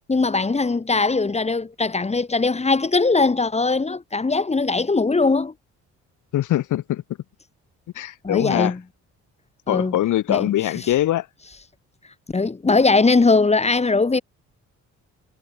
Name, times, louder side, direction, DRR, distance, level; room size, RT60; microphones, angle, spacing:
voice 1, 0.1-5.5 8.2-8.8 9.7-10.0 10.3-10.5 10.8-10.9 12.3-14.2, left 3 dB, 20° left, 1.7 m, -20 dB
voice 2, 6.3-7.0 7.9-8.7 9.7-11.3, left 13 dB, 80° left, 4.6 m, -22 dB
cardioid pair, 90°, 30 cm